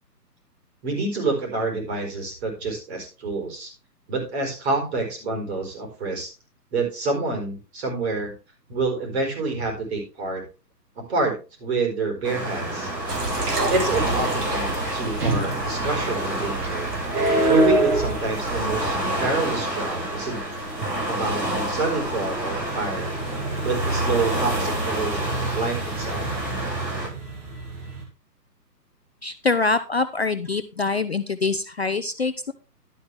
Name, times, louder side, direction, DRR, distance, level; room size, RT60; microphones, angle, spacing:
voice 1, 0.8-3.7 4.1-6.3 6.7-8.3 8.7-10.4 11.1-12.9 13.7-16.9 17.5-20.4 21.1-23.1 23.6-26.3, right 3 dB, 40° right, 2 dB, 4.5 m, -27 dB
Waves surf, 12.2-27.1, right 1 dB, 85° right, 6.3 m, -29 dB
sound 1, 13.1-19.0, right 3 dB, 65° right, 3.0 m, -30 dB
sound 2, 16.5-28.0, right 2 dB, 25° right, 2.6 m, -28 dB
voice 2, 29.2-32.5, left 3 dB, 40° left, 11 dB, 0.5 m, -24 dB
11.5 x 8.5 x 3.4 m, 0.30 s
figure-of-eight pair, 135°, 49 cm